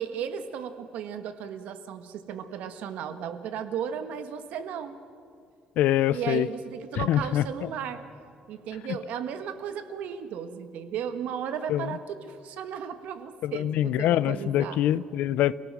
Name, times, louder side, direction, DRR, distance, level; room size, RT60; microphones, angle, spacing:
voice 1, 0.0-5.0 6.1-8.0 8.5-14.8, right 8 dB, 75° right, 9 dB, 1.6 m, -35 dB
voice 2, 5.8-6.5 7.0-7.7 8.9-9.0 11.7-11.9 13.4-15.6, left 12 dB, 80° left, 19 dB, 0.6 m, -25 dB
29.5 x 17.5 x 6.2 m, 2.4 s
cardioid pair, 145°, 3 cm